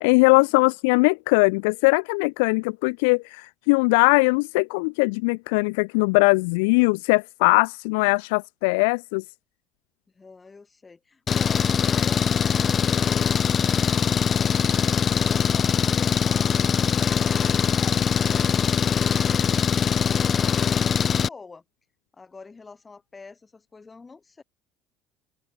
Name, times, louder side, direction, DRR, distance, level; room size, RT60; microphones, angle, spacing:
voice 1, 0.0-9.2, left 29 dB, 85° left, 0.6 m, -20 dB
voice 2, 10.1-14.7 15.1-18.5 19.1-21.6 22.1-24.4, left 4 dB, 25° left, 3.7 m, -45 dB
Engine, 11.3-21.3, left 7 dB, 40° left, 1.2 m, -22 dB
open air
supercardioid pair, 85°, 0 cm